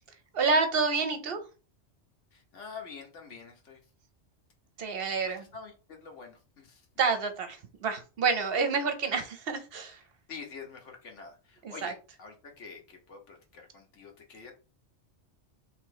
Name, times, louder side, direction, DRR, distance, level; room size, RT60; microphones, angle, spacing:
voice 1, 0.3-1.4 4.8-5.4 7.0-10.0 11.6-11.9, right 4 dB, 60° right, 7 dB, 0.8 m, -28 dB
voice 2, 2.3-3.8 5.2-6.9 10.3-14.5, left 5 dB, 80° left, 2 dB, 1.4 m, -46 dB
3.2 x 2.9 x 4.6 m, 0.34 s
omnidirectional pair, 1.2 m